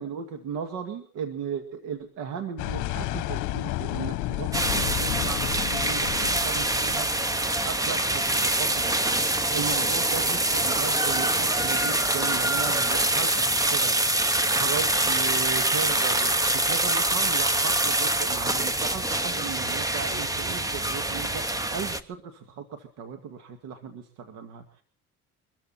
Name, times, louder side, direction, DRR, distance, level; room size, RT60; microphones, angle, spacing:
voice 1, 0.0-14.0 14.5-24.8, right 7 dB, 70° right, 7 dB, 2.1 m, -36 dB
sound 1, 2.6-7.7, left 17 dB, 65° left, 1.0 m, -31 dB
sound 2, 4.5-22.0, right 1 dB, 10° right, 0.9 m, -25 dB
24.0 x 14.0 x 4.3 m, 0.43 s
cardioid pair, 130°, 32 cm